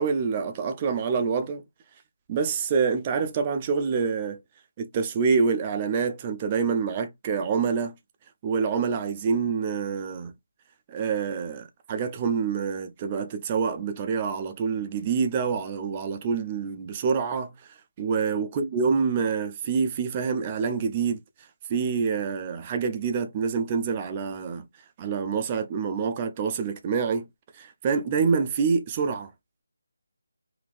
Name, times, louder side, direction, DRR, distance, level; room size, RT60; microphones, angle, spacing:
voice 1, 0.0-1.6 2.3-4.4 4.8-8.0 8.4-10.3 10.9-17.5 18.0-21.2 21.7-24.7 25.0-27.3 27.5-29.3, right 5 dB, 20° right, 0.4 m, -26 dB
3.4 x 2.7 x 2.4 m
figure-of-eight pair, 170°, 0 cm